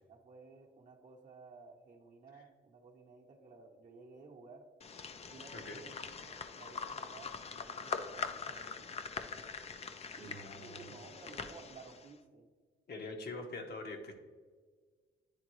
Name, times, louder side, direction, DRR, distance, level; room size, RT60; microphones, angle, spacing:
voice 1, 0.1-4.7 5.3-9.1 10.2-12.5, right 4 dB, 40° right, -1 dB, 0.8 m, -55 dB
sound 1, 4.8-12.1, left 5 dB, 30° left, 0.4 m, -43 dB
voice 2, 10.2-11.0 12.9-14.2, left 2 dB, 55° left, 3 dB, 1.0 m, -44 dB
9.9 x 3.7 x 3.1 m, 1.5 s
cardioid pair, 110°, 20 cm